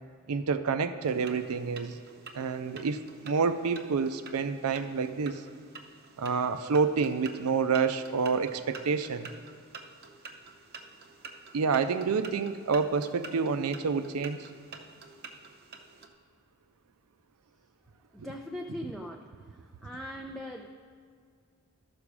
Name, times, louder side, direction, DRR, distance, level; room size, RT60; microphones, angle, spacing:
voice 1, 0.3-2.0 2.3-5.4 6.2-9.3 11.5-14.5 18.2-18.3, right 5 dB, 90° right, 10 dB, 0.5 m, -28 dB
sound 1, 1.0-16.1, right 4 dB, 45° right, 0.7 m, -49 dB
voice 2, 18.1-19.2 19.8-20.7, equal, ahead, 0 dB, 0.4 m, -39 dB
12.5 x 6.1 x 4.8 m, 2.1 s
head